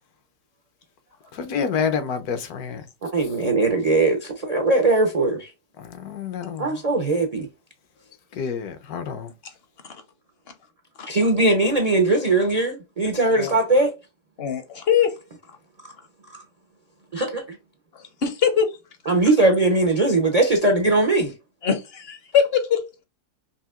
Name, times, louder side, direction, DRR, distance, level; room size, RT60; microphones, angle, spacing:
voice 1, 1.3-2.8 5.8-6.7 8.3-9.3, left 6 dB, 70° left, 1.2 m, -28 dB
voice 2, 3.0-5.5 6.6-7.5 11.1-13.9 15.8-15.9 16.3-16.4 17.1-17.6 19.1-21.4, right 2 dB, 60° right, 0.4 m, -20 dB
voice 3, 14.4-15.1 18.2-18.7 21.6-23.0, left 7 dB, 50° left, 0.8 m, -22 dB
5.6 x 2.7 x 2.4 m
omnidirectional pair, 1.8 m